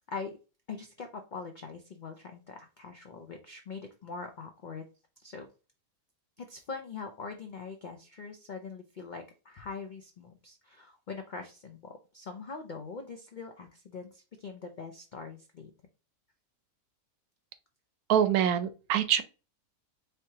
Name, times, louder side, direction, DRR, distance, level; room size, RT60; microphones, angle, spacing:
voice 1, 0.7-4.8 5.2-5.5 6.4-15.7, left 4 dB, 85° left, 0.4 m, -42 dB
voice 2, 18.1-19.2, right 9 dB, 90° right, 1.1 m, -25 dB
4.4 x 3.4 x 2.8 m
omnidirectional pair, 1.5 m